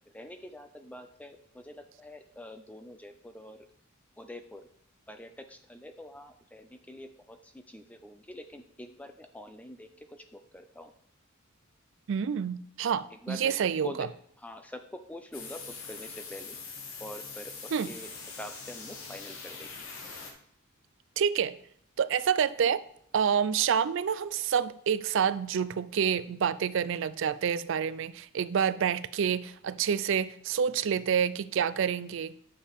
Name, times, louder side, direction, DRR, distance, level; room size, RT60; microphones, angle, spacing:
voice 1, 0.1-3.7 4.2-4.7 5.1-10.9 13.1-14.1 14.4-16.6 17.0-19.7, left 1 dB, 5° left, 0.4 m, -45 dB
voice 2, 12.1-13.9 17.7-17.9 21.2-21.6 22.0-22.8 23.1-32.3, right 7 dB, 60° right, 0.4 m, -28 dB
sound 1, 15.3-20.3, left 4 dB, 70° left, 1.3 m, -43 dB
9.9 x 6.6 x 3.6 m
head